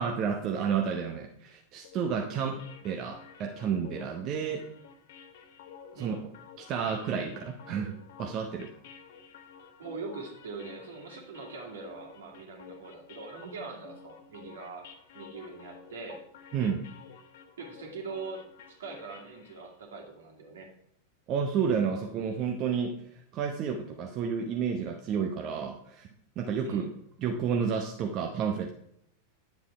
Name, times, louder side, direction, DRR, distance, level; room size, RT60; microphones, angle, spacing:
voice 1, 0.0-2.5 2.8-4.6 5.9-6.2 6.6-8.7 16.5-16.9 21.3-26.1 26.4-26.8 27.2-28.7, right 7 dB, 35° right, 2 dB, 0.9 m, -31 dB
sound 1, 1.8-19.7, left 6 dB, 55° left, 1.0 m, -51 dB
voice 2, 9.8-14.9 15.1-16.2 17.6-18.4 18.7-20.7 26.6-26.9, right 4 dB, 65° right, 2 dB, 2.3 m, -42 dB
10.0 x 7.3 x 4.4 m, 0.71 s
figure-of-eight pair, 90°, 0 cm